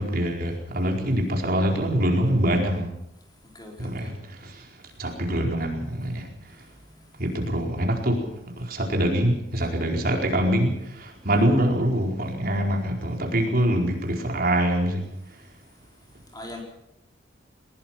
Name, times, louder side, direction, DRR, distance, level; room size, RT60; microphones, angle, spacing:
voice 1, 0.0-2.9 3.8-4.7 5.0-6.3 7.2-8.3 8.6-15.1, right 1 dB, 50° right, 1 dB, 4.6 m, -24 dB
voice 2, 3.4-4.1 4.8-5.0 6.4-7.2 16.3-16.6, left 1 dB, 20° left, 1 dB, 4.6 m, -44 dB
21.0 x 21.0 x 5.9 m, 0.83 s
head